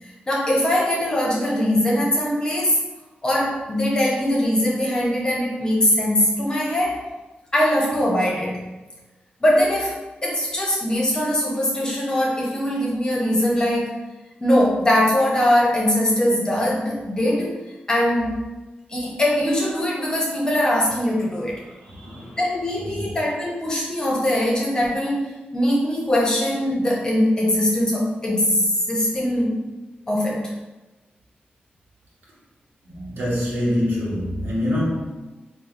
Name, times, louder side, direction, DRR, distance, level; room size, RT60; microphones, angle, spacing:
voice 1, 0.3-2.8 3.2-7.0 7.5-8.7 9.4-13.9 14.4-17.6 17.9-18.4 18.9-21.6 22.4-25.2 25.5-29.6 30.1-30.5, left 1 dB, 20° left, -4 dB, 0.8 m, -21 dB
voice 2, 21.6-22.4 22.8-23.2 32.8-35.1, left 1 dB, 85° right, -7 dB, 1.1 m, -26 dB
4.5 x 2.3 x 2.5 m, 1.1 s
wide cardioid pair, 155°, 3 cm